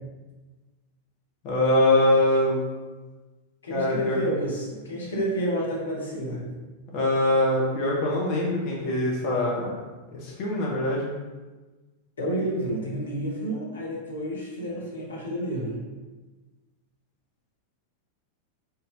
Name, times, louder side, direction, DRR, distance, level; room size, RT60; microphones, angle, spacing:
voice 1, 1.4-2.6 3.7-4.2 6.9-9.8 10.1-11.1, left 1 dB, 40° left, -3 dB, 1.0 m, -23 dB
voice 2, 3.6-6.5 12.2-15.8, right 1 dB, 70° left, -3 dB, 1.1 m, -30 dB
4.4 x 3.8 x 3.2 m, 1.2 s
figure-of-eight pair, 90°, 0 cm